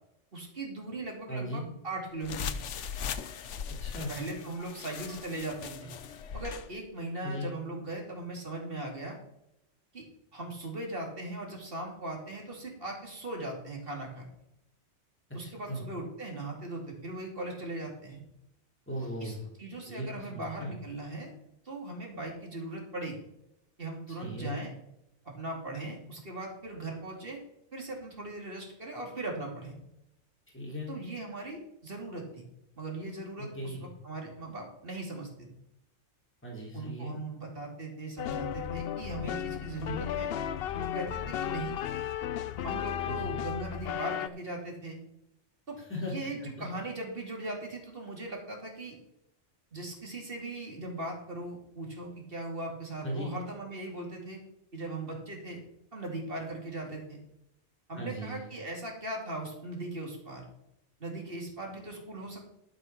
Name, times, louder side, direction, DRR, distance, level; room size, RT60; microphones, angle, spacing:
voice 1, 0.3-2.5 4.1-5.9 6.3-9.2 9.9-10.1 10.3-14.3 15.3-18.2 19.2-21.3 21.6-23.2 23.8-24.7 25.2-27.4 27.7-29.8 30.9-32.4 32.8-35.5 36.7-40.3 40.7-41.8 42.6-45.0 45.7-49.0 49.7-54.4 54.7-55.6 55.9-57.2 57.9-60.4 61.0-62.5, right 2 dB, 50° right, 0 dB, 3.0 m, -39 dB
voice 2, 1.3-1.7 3.8-4.1 7.2-7.5 15.7-15.8 18.9-19.4 19.9-20.7 24.2-24.6 30.5-30.9 33.5-33.8 36.4-37.2 43.0-43.3 45.9-46.7 53.0-53.4 57.9-58.5, equal, 10° left, -3 dB, 3.2 m, -37 dB
sound 1, 2.2-6.7, left 7 dB, 85° left, 1.1 m, -39 dB
sound 2, 38.2-44.3, left 10 dB, 60° left, 0.7 m, -34 dB
12.5 x 6.0 x 5.9 m, 0.83 s
omnidirectional pair, 1.2 m